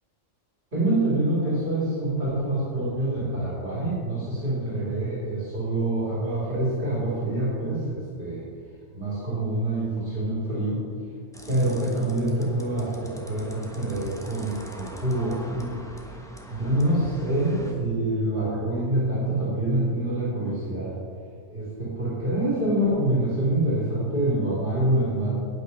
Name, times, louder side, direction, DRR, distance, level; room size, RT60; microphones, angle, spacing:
voice 1, 0.7-8.5 8.9-10.8 11.5-15.7 16.5-20.9 21.5-25.4, right 1 dB, 45° right, -8 dB, 2.9 m, -26 dB
sound 1, 11.3-17.7, equal, 5° left, 0.9 m, -44 dB
8.6 x 8.3 x 5.4 m, 2.1 s
omnidirectional pair, 1.2 m